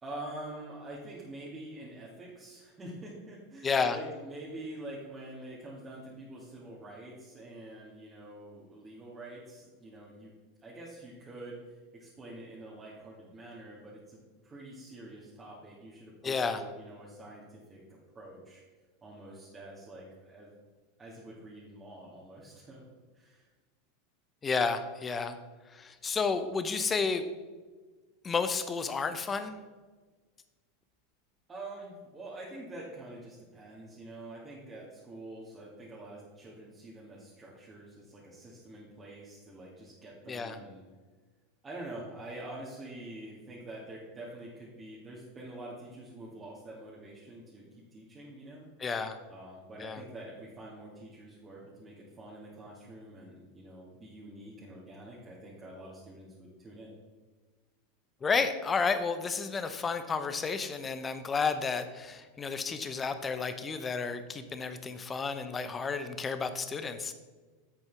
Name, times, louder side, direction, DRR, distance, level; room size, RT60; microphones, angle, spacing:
voice 1, 0.0-10.3 10.6-18.6 19.0-20.5 21.0-22.8 23.1-23.5 31.5-40.8 41.6-48.7 49.3-56.9, right 1 dB, 20° right, -6 dB, 2.2 m, -46 dB
voice 2, 3.6-4.0 16.2-16.6 24.4-25.4 25.8-27.2 28.2-29.5 40.3-40.6 48.8-49.2 49.8-50.0 58.2-67.1, left 5 dB, 20° left, 10 dB, 0.8 m, -31 dB
11.0 x 8.1 x 3.5 m, 1.4 s
figure-of-eight pair, 85°, 0 cm